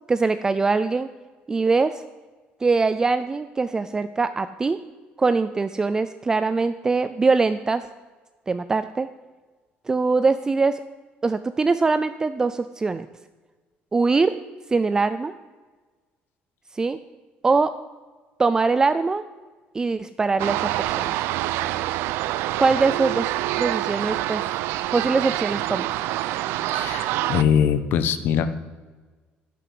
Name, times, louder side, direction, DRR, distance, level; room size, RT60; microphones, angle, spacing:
voice 1, 0.1-1.1 1.5-2.0 2.6-4.8 5.2-7.9 8.5-9.1 9.9-10.8 11.2-13.1 13.9-14.3 14.7-15.3 16.7-17.0 17.4-17.7 18.4-19.2 19.7-21.2 22.6-23.3 23.6-24.4 24.9-25.9, right 4 dB, 15° right, 12 dB, 0.4 m, -22 dB
sound 1, 20.4-27.4, right 15 dB, 90° right, 0.6 m, -26 dB
voice 2, 26.7-28.5, left 8 dB, 60° left, 12 dB, 1.2 m, -22 dB
11.5 x 11.0 x 7.8 m, 1.3 s
cardioid pair, 150°, 4 cm